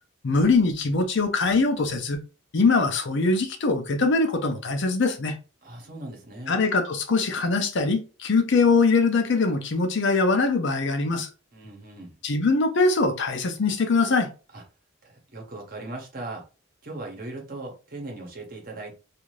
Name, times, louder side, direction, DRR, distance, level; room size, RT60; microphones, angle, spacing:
voice 1, 0.2-2.2 2.5-5.4 6.5-11.3 12.2-14.3, left 3 dB, 55° left, 0.5 m, -22 dB
voice 2, 5.6-6.5 11.5-12.2 14.5-14.6 15.0-16.4 16.8-18.9, right 2 dB, 40° right, 0.9 m, -38 dB
2.6 x 2.4 x 3.1 m
head